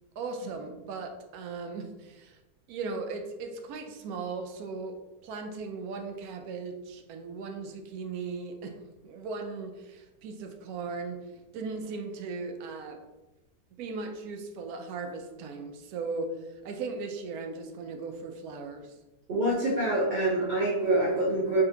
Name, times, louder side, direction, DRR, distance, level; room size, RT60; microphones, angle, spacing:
voice 1, 0.2-2.4 2.7-5.0 5.2-11.3 11.5-13.0 13.8-16.3 16.6-18.9, right 4 dB, 75° right, 5 dB, 1.0 m, -37 dB
voice 2, 19.3-21.6, right 1 dB, 60° right, -4 dB, 0.5 m, -26 dB
3.8 x 3.2 x 2.7 m, 1.1 s
omnidirectional pair, 1.7 m